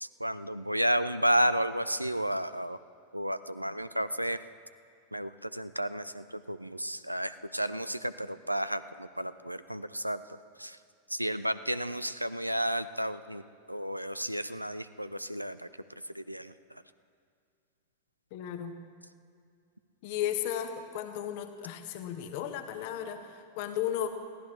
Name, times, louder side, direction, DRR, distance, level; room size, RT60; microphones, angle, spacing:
voice 1, 0.0-2.8 3.1-4.4 5.1-10.8 11.1-13.4 13.7-15.7 16.1-16.8, equal, 90° right, 13 dB, 0.4 m, -32 dB
voice 2, 18.3-18.8 20.0-24.1, left 10 dB, 50° left, 8 dB, 1.2 m, -34 dB
22.5 x 15.5 x 3.2 m, 2.3 s
figure-of-eight pair, 90°, 0 cm